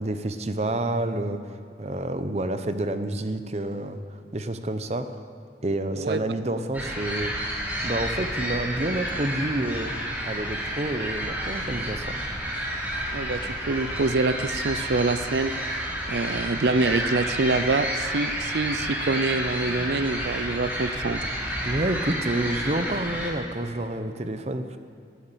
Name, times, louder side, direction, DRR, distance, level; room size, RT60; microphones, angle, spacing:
voice 1, 0.0-1.4 1.8-5.1 5.6-7.3 7.8-9.9 10.2-12.2 21.6-24.8, right 1 dB, 35° right, 9 dB, 0.8 m, -29 dB
sound 1, 6.7-23.3, equal, 10° right, 3.5 m, -30 dB
voice 2, 13.1-15.5 16.1-21.2, right 3 dB, 70° right, 12 dB, 0.6 m, -26 dB
18.0 x 9.4 x 7.4 m, 2.3 s
head